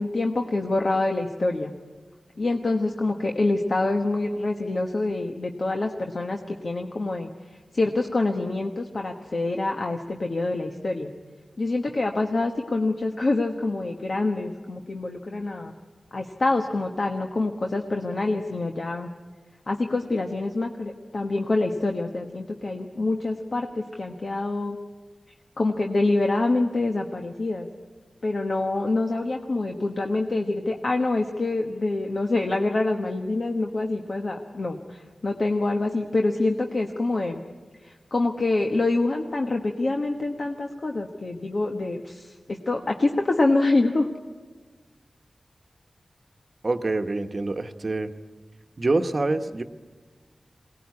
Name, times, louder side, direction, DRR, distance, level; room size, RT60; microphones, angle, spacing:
voice 1, 0.0-1.7 2.4-11.1 11.6-15.7 16.1-19.1 19.7-24.8 25.6-27.7 28.2-37.4 37.8-44.1, left 2 dB, 50° left, 3 dB, 1.3 m, -26 dB
voice 2, 46.6-48.1 48.8-49.6, right 2 dB, 45° right, 7 dB, 1.2 m, -26 dB
22.5 x 18.5 x 9.6 m, 1.4 s
wide cardioid pair, 100°, 0 cm